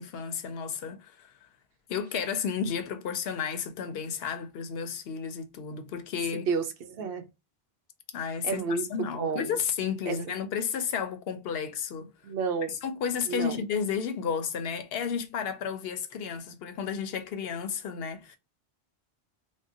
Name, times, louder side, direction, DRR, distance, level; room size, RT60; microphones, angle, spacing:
voice 1, 0.0-1.3 1.9-6.5 8.1-12.1 12.8-18.4, left 7 dB, 75° left, 0.8 m, -32 dB
voice 2, 6.5-7.3 8.4-8.8 9.1-9.6 10.1-10.2 12.2-12.7 13.3-13.6, right 5 dB, 70° right, 0.8 m, -30 dB
3.6 x 2.2 x 2.6 m
omnidirectional pair, 1.1 m